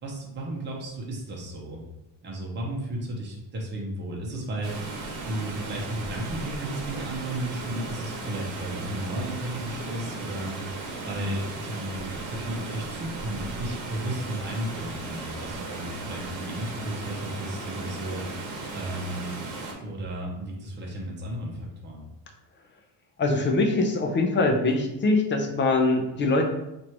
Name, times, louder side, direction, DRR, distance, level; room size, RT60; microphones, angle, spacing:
voice 1, 0.0-1.8 2.2-18.5 18.7-19.3 19.8-22.1, right 1 dB, 25° right, -2 dB, 0.8 m, -34 dB
Water, 4.6-19.7, right 3 dB, 90° right, 1.0 m, -36 dB
voice 2, 23.2-26.4, left 2 dB, 25° left, 3 dB, 0.4 m, -23 dB
3.0 x 2.6 x 4.4 m, 0.91 s
cardioid pair, 150°, 44 cm